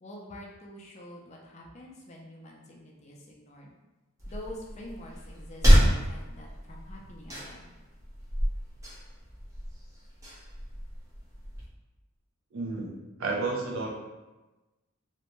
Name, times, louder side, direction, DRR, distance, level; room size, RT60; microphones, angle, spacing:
voice 1, 0.0-3.7 4.3-7.7, left 1 dB, 35° left, -2 dB, 0.4 m, -46 dB
sound 1, 4.2-11.6, equal, 15° right, 0.6 m, -28 dB
voice 2, 12.5-12.9 13.2-13.9, right 3 dB, 75° right, -1 dB, 0.5 m, -31 dB
2.6 x 2.1 x 2.9 m, 1.1 s
head